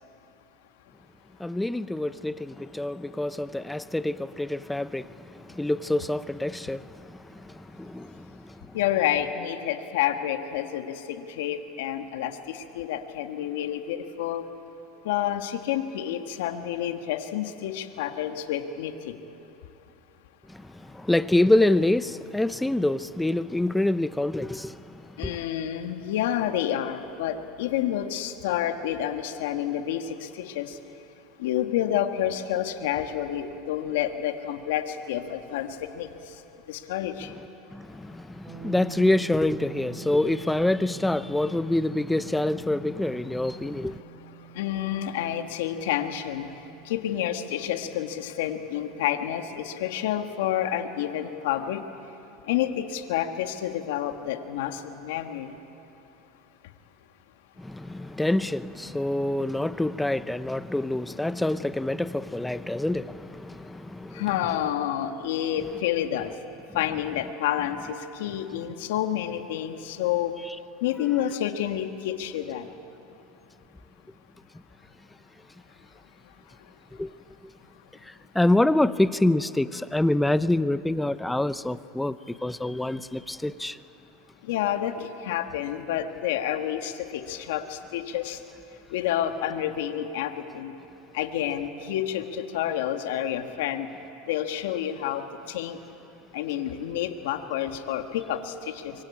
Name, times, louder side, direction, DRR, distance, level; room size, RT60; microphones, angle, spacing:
voice 1, 1.4-8.6 20.5-25.4 37.7-44.0 57.6-64.2 77.0-77.1 78.0-83.8, left 1 dB, 5° left, 0.7 m, -26 dB
voice 2, 8.7-14.4 15.0-19.1 25.2-30.8 31.4-35.7 35.9-36.1 36.7-37.3 44.5-46.5 46.8-51.8 52.5-55.5 64.1-66.3 66.7-70.3 70.8-72.7 84.5-88.4 88.9-90.7 91.1-93.9 94.3-95.2 95.5-95.8 96.3-98.9, left 11 dB, 80° left, 1.7 m, -29 dB
sound 1, 38.4-48.2, right 7 dB, 10° right, 6.5 m, -47 dB
25.0 x 24.0 x 8.7 m
supercardioid pair, 105°, 0 cm